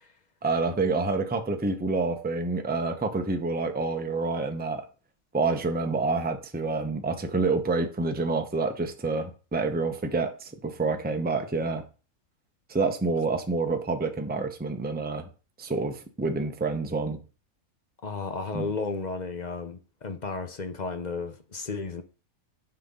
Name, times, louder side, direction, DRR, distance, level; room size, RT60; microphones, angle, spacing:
voice 1, 0.4-4.8 5.3-11.8 12.7-15.3 15.6-17.2 18.5-18.7, right 3 dB, 10° right, 0.8 m, -28 dB
voice 2, 18.0-22.0, left 4 dB, 35° left, 0.8 m, -33 dB
9.9 x 5.7 x 3.8 m
omnidirectional pair, 1.5 m